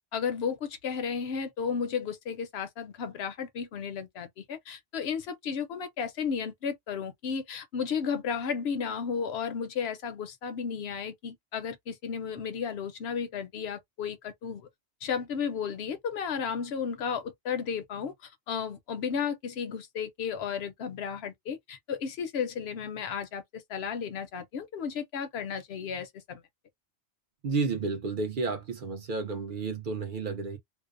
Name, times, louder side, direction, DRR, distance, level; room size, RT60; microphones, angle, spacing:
voice 1, 0.1-14.7 15.0-26.4, left 6 dB, 70° left, 0.8 m, -33 dB
voice 2, 27.4-30.6, right 4 dB, 55° right, 0.7 m, -31 dB
2.6 x 2.0 x 2.4 m
omnidirectional pair, 1.1 m